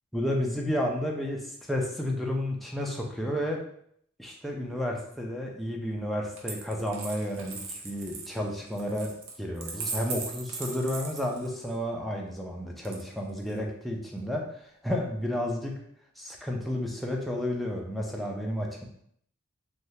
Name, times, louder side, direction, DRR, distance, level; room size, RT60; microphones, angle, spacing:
voice 1, 0.1-3.6 4.2-9.1 9.4-14.5 14.8-15.7 16.2-18.8, equal, ahead, -1 dB, 0.4 m, -31 dB
Coin (dropping), 6.4-11.8 12.8-13.6, right 4 dB, 60° right, 0.5 m, -39 dB
3.2 x 2.3 x 2.7 m, 0.67 s
head